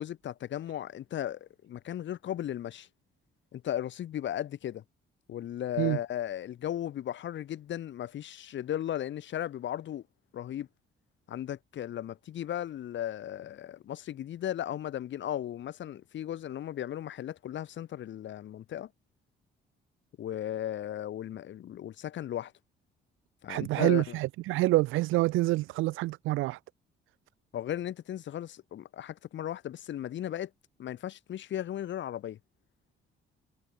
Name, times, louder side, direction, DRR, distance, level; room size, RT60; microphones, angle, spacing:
voice 1, 0.0-2.9 3.5-4.8 5.3-10.0 10.3-10.7 11.3-18.9 20.2-22.5 23.4-24.2 27.5-30.5 30.8-32.4, left 11 dB, 70° left, 1.9 m, -36 dB
voice 2, 23.5-26.6, right 19 dB, 90° right, 0.5 m, -27 dB
cardioid pair, 90°, 20 cm